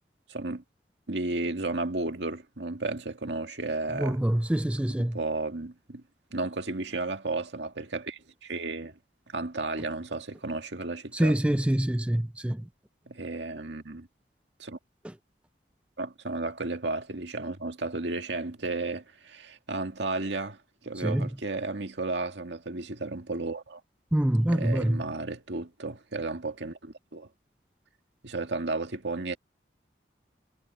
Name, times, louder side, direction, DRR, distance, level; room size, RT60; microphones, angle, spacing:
voice 1, 0.3-0.6 1.1-4.2 5.0-6.0 6.3-9.0 9.3-11.4 13.1-14.1 14.6-14.8 16.0-23.8 24.5-27.3 28.2-29.4, right 3 dB, 85° right, 2.0 m, -33 dB
voice 2, 3.9-5.2 11.1-12.7 15.0-15.1 21.0-21.3 24.1-25.0, right 1 dB, 5° right, 0.3 m, -25 dB
head